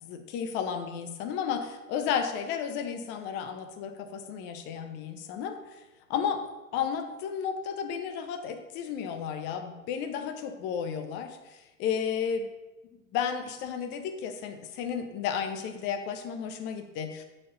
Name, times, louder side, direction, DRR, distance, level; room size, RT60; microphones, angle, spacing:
voice 1, 0.0-5.6 6.1-6.4 6.7-12.5 13.1-17.2, left 7 dB, 25° left, 7 dB, 0.6 m, -33 dB
4.9 x 4.3 x 5.5 m, 1.1 s
figure-of-eight pair, 95°, 42 cm